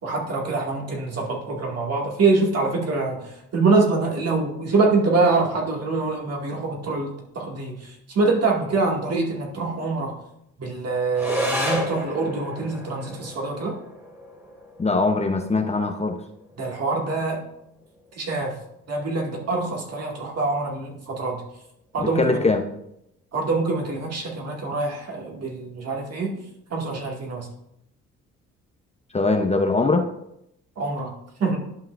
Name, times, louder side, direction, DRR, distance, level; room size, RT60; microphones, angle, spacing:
voice 1, 0.0-10.1 10.6-13.8 16.6-17.4 18.1-18.5 18.9-21.4 21.9-22.4 23.3-26.4 26.7-27.5 30.8-31.1 31.4-31.6, right 3 dB, 55° right, -1 dB, 2.1 m, -24 dB
sound 1, 11.1-20.1, equal, 10° right, 2.4 m, -34 dB
voice 2, 14.8-16.2 22.2-22.6 29.1-30.1, left 3 dB, 20° left, 4 dB, 0.7 m, -21 dB
11.5 x 5.5 x 2.5 m, 0.79 s
cardioid pair, 90°, 30 cm